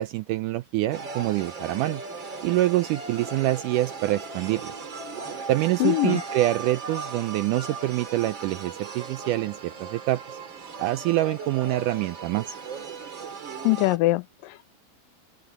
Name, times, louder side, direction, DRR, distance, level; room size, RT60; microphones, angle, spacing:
voice 1, 0.0-2.0 2.4-4.7 5.5-10.4 10.8-12.6, right 16 dB, 85° right, 1.8 m, -26 dB
sound 1, 0.9-14.0, right 4 dB, 35° right, 2.9 m, -37 dB
Guitar, 4.5-8.0, left 1 dB, 10° left, 1.3 m, -54 dB
voice 2, 5.8-6.2 13.6-14.8, left 19 dB, 80° left, 2.1 m, -23 dB
open air
omnidirectional pair, 4.2 m